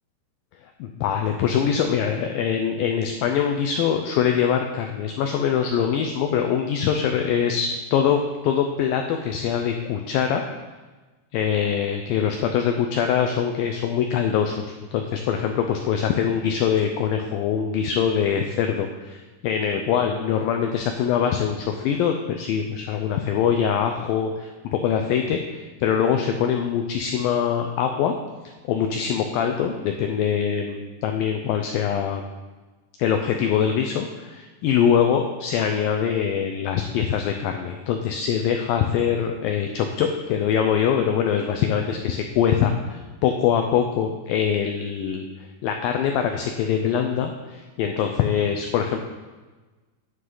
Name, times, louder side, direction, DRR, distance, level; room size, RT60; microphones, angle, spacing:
voice 1, 0.8-10.5 11.3-28.2 28.7-32.3 33.0-45.3 45.6-49.0, left 8 dB, 85° left, 4 dB, 2.0 m, -23 dB
9.5 x 9.4 x 3.9 m, 1.3 s
omnidirectional pair, 4.8 m